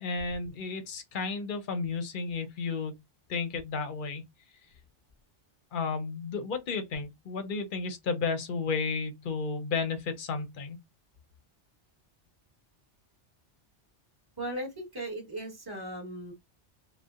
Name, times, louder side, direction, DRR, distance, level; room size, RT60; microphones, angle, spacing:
voice 1, 0.0-3.0 3.3-4.2 5.7-10.8, left 4 dB, 55° left, 0.7 m, -33 dB
voice 2, 14.4-16.3, right 1 dB, 20° right, 1.2 m, -37 dB
2.7 x 2.1 x 2.2 m
omnidirectional pair, 1.2 m